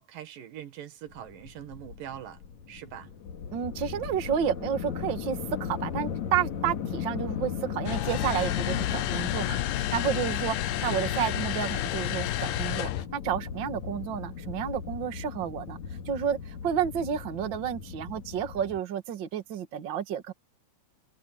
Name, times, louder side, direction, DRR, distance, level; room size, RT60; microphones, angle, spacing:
voice 1, 0.0-2.4 2.7-3.1, right 10 dB, 85° right, 3.3 m, -42 dB
sound 1, 1.1-18.8, left 7 dB, 60° left, 3.1 m, -37 dB
voice 2, 3.5-10.6 10.8-15.8 16.1-20.3, right 9 dB, 45° right, 1.9 m, -31 dB
sound 2, 7.9-13.1, left 14 dB, 85° left, 2.5 m, -30 dB
omnidirectional pair, 3.8 m